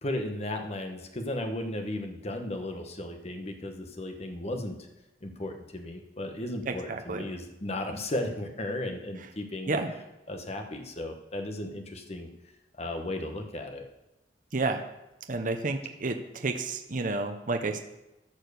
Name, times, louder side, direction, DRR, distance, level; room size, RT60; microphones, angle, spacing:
voice 1, 0.0-4.8 5.2-9.8 10.3-12.3 12.8-13.8, left 1 dB, 35° left, 5 dB, 1.1 m, -35 dB
voice 2, 6.7-7.2 9.7-9.9 14.5-14.8 15.3-17.8, right 3 dB, 50° right, 6 dB, 0.8 m, -30 dB
13.5 x 4.5 x 6.8 m, 0.96 s
head